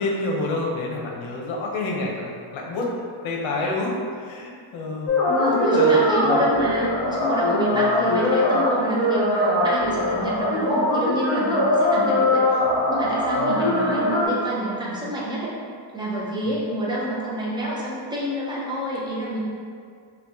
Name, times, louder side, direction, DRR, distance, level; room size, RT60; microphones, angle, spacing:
voice 1, 0.0-2.9 3.2-5.2 5.5-6.4 7.7-7.8 13.4-13.9, left 2 dB, 70° left, -2 dB, 0.7 m, -28 dB
sound 1, 5.1-14.3, left 1 dB, 45° left, 0.9 m, -21 dB
voice 2, 5.3-12.6 12.9-15.5 15.9-19.4, equal, 10° right, -7 dB, 0.4 m, -28 dB
2.8 x 2.3 x 3.4 m, 2.2 s
wide cardioid pair, 165°, 49 cm